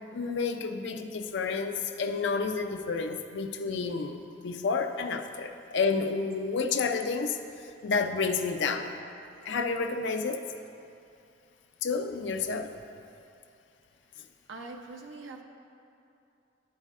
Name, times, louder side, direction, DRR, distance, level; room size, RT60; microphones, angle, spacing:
voice 1, 0.1-4.2 4.4-7.4 7.8-8.9 9.5-10.4 11.8-12.7, left 4 dB, 65° left, 6 dB, 0.5 m, -30 dB
voice 2, 14.5-15.4, right 3 dB, 85° right, 3 dB, 0.7 m, -42 dB
9.9 x 8.3 x 2.5 m, 2.6 s
head